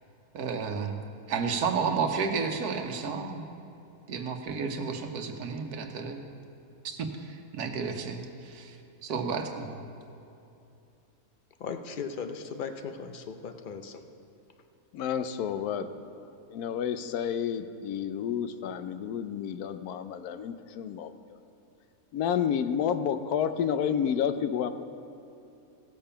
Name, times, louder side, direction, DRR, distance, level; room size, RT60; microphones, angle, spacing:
voice 1, 0.3-1.0 1.3-3.4 4.1-6.2 7.0-7.1 7.5-8.8 9.0-9.8, right 5 dB, 85° right, 5 dB, 1.4 m, -31 dB
voice 2, 11.6-14.0, left 6 dB, 50° left, 7 dB, 0.6 m, -37 dB
voice 3, 14.9-15.9 16.5-21.1 22.1-24.7, left 8 dB, 80° left, 10 dB, 1.1 m, -30 dB
17.0 x 7.0 x 5.7 m, 2.7 s
omnidirectional pair, 1.6 m